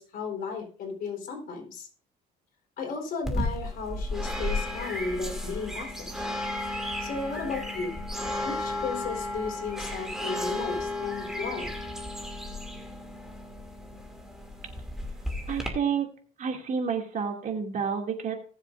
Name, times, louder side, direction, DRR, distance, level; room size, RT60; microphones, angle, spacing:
voice 1, 0.0-1.9 2.8-6.1 7.0-7.9 8.4-11.7, left 4 dB, 60° left, 1 dB, 4.1 m, -34 dB
sound 1, 3.2-15.7, left 1 dB, 5° right, 2.6 m, -33 dB
voice 2, 15.5-16.1 16.4-18.3, right 6 dB, 50° right, 2 dB, 2.6 m, -29 dB
20.5 x 7.3 x 2.6 m, 0.43 s
cardioid pair, 110°, 17 cm